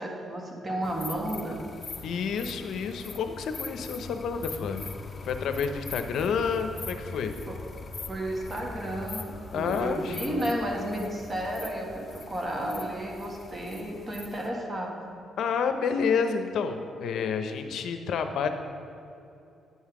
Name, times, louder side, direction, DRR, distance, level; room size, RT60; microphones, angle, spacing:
voice 1, 0.0-1.6 7.5-7.7 8.1-15.1, right 1 dB, 25° right, 0 dB, 1.5 m, -32 dB
sound 1, 0.8-14.5, left 4 dB, 35° left, 0.6 m, -42 dB
voice 2, 2.0-4.9 5.2-7.3 9.5-10.4 15.4-18.5, left 6 dB, 75° left, 7 dB, 0.6 m, -29 dB
9.6 x 5.6 x 4.8 m, 2.7 s
cardioid pair, 90°, 0 cm